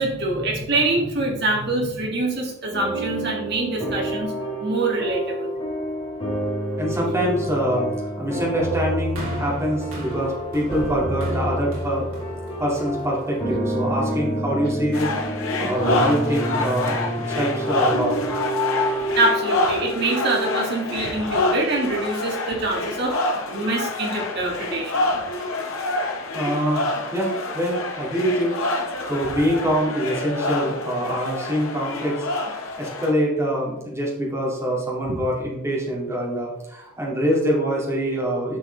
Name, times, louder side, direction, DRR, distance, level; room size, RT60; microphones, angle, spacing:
voice 1, 0.0-4.3 4.6-5.5 19.2-25.1, right 2 dB, 50° right, 0 dB, 2.1 m, -24 dB
sound 1, 2.7-20.4, right 1 dB, 25° left, 2.7 m, -28 dB
voice 2, 6.8-12.1 12.6-15.1 15.6-17.0 17.3-18.2 26.3-28.5 28.8-32.3 32.8-38.6, equal, 10° right, -4 dB, 2.3 m, -24 dB
sound 2, 9.2-13.5 14.3-14.4, right 1 dB, 75° right, 3.0 m, -36 dB
sound 3, 14.9-33.1, left 2 dB, 80° left, 1.4 m, -27 dB
10.5 x 5.8 x 3.4 m, 0.85 s
head